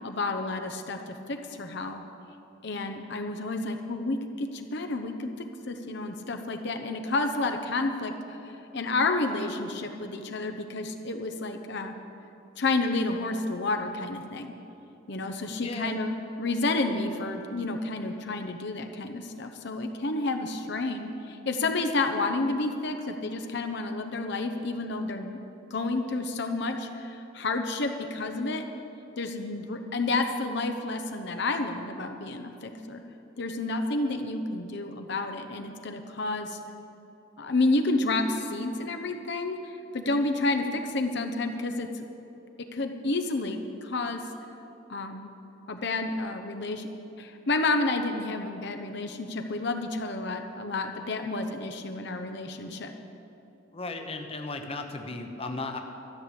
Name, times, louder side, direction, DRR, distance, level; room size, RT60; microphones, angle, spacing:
voice 1, 0.0-2.0 2.6-5.3 5.7-12.0 12.6-14.5 15.1-25.4 25.7-28.6 29.2-33.0 33.4-36.6 37.4-42.1 42.7-44.2 44.9-45.3 45.7-46.9 47.2-52.9, left 2 dB, 60° left, 6 dB, 0.8 m, -30 dB
voice 2, 15.6-16.0 53.7-55.8, left 3 dB, 30° left, 4 dB, 0.9 m, -35 dB
13.0 x 6.7 x 9.8 m, 2.9 s
head